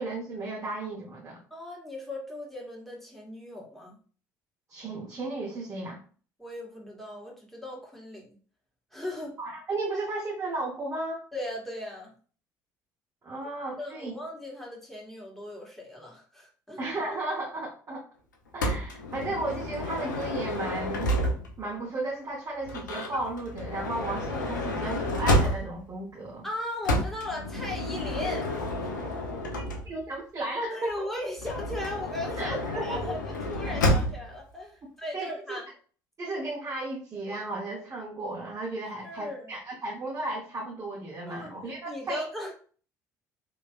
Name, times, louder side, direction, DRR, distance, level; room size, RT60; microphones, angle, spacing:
voice 1, 0.0-1.4 4.7-6.0 9.4-11.2 13.2-14.2 16.8-18.1 18.5-21.1 21.6-26.4 29.8-31.1 32.4-33.1 35.1-35.6 36.2-42.2, right 2 dB, 30° right, -3 dB, 0.9 m, -34 dB
voice 2, 1.5-4.0 6.4-8.4 8.9-9.4 11.3-12.1 13.4-13.5 13.8-16.8 26.4-28.5 28.8-28.9 30.6-35.7 39.0-39.5 41.3-41.5 41.8-42.5, left 1 dB, ahead, -3 dB, 1.4 m, -37 dB
Motor vehicle (road) / Sliding door, 18.6-21.7 22.6-25.9 26.8-30.2 31.4-34.3, left 1 dB, 85° left, 0.5 m, -30 dB
3.0 x 2.8 x 2.3 m, 0.41 s
figure-of-eight pair, 55°, 10 cm